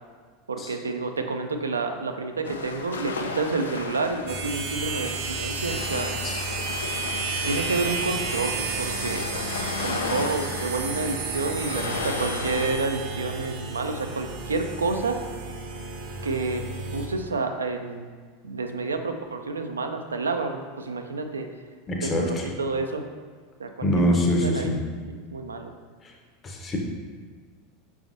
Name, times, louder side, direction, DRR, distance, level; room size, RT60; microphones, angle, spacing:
voice 1, 0.5-6.1 7.4-9.3 9.8-15.2 16.2-16.7 16.9-18.1 18.4-21.5 22.0-23.0 23.6-24.1 24.3-24.7 25.1-25.7, right 3 dB, 90° right, 6 dB, 0.3 m, -29 dB
sound 1, 2.4-12.7, left 4 dB, 85° left, 0.3 m, -34 dB
sound 2, 4.3-17.1, right 3 dB, 60° right, 0.6 m, -32 dB
voice 2, 21.9-22.5 23.8-24.8 26.4-26.8, equal, 30° left, 0 dB, 0.7 m, -24 dB
5.0 x 3.4 x 2.6 m, 1.5 s
hypercardioid pair, 85°, 0 cm